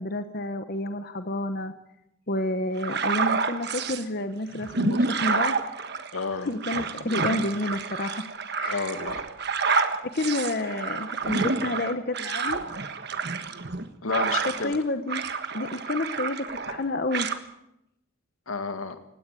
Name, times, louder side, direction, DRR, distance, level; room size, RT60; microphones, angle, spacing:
voice 1, 0.0-1.7 2.3-5.5 6.3-8.2 8.5-8.9 10.0-12.6 14.6-15.2 15.5-17.3, left 2 dB, 45° left, 9 dB, 1.0 m, -29 dB
sound 1, 2.8-4.0 4.5-14.8 15.1-16.8 17.1-17.4, right 4 dB, 50° right, 1.4 m, -29 dB
voice 2, 6.1-6.5 8.7-9.2 14.0-14.8 18.5-19.0, left 4 dB, 85° left, 8 dB, 2.0 m, -30 dB
19.5 x 17.0 x 8.3 m, 0.84 s
head